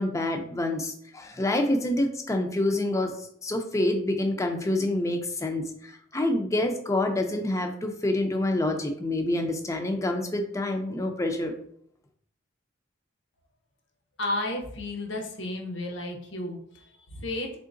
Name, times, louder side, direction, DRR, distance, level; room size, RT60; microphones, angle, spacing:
voice 1, 0.0-11.5, left 1 dB, 15° left, 4 dB, 0.4 m, -27 dB
voice 2, 14.2-17.6, left 1 dB, 65° left, 2 dB, 0.7 m, -33 dB
3.7 x 3.6 x 2.5 m, 0.67 s
head